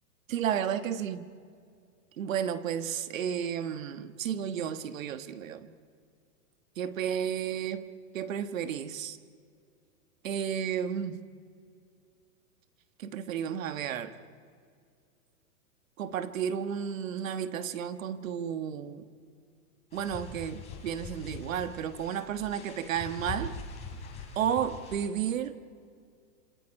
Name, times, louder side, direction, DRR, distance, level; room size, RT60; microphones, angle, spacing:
voice 1, 0.3-1.2 2.2-5.8 6.8-9.2 10.2-11.2 13.0-14.1 16.0-19.0 19.9-23.5 24.4-25.6, right 9 dB, 60° right, 1.4 m, -32 dB
sound 1, 19.9-25.1, left 3 dB, 15° left, 3.2 m, -43 dB
27.0 x 26.5 x 5.4 m
hypercardioid pair, 170°, 45 cm